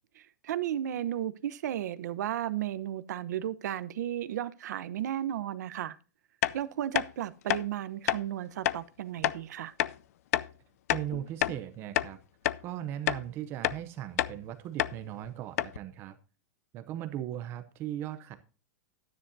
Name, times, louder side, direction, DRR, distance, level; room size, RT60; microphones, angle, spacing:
voice 1, 0.2-6.0 6.5-9.7, right 11 dB, 75° right, 1.0 m, -34 dB
sound 1, 6.4-6.6 6.9-7.1 7.5-7.6 8.1-8.2 8.6-8.8 9.2-9.4 9.8-9.9 10.3-10.5 10.9-11.6 11.9-12.1 12.4-12.6 13.1-13.2 13.6-13.8 14.2-14.4 14.8-15.0 15.2-15.3 15.6-15.8, left 13 dB, 60° left, 0.5 m, -28 dB
voice 2, 10.9-12.2 12.6-16.2 16.7-18.4, right 12 dB, 25° right, 0.6 m, -38 dB
12.5 x 10.0 x 2.7 m
supercardioid pair, 175°, 9 cm